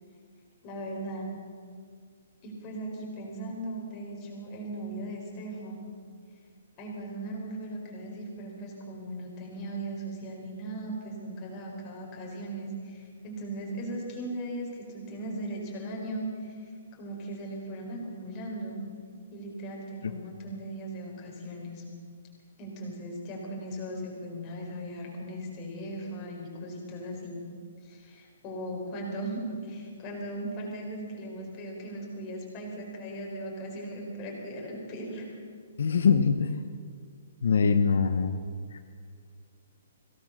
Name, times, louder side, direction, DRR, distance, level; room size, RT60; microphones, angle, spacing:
voice 1, 0.6-1.3 2.4-5.8 6.8-18.8 19.3-21.8 22.6-27.4 27.8-35.3, right 1 dB, 20° left, -1 dB, 4.5 m, -38 dB
voice 2, 35.8-36.6 37.4-38.4 38.7-38.8, left 5 dB, 70° left, 7 dB, 1.0 m, -23 dB
22.5 x 17.5 x 6.6 m, 2.1 s
hypercardioid pair, 175°, 0 cm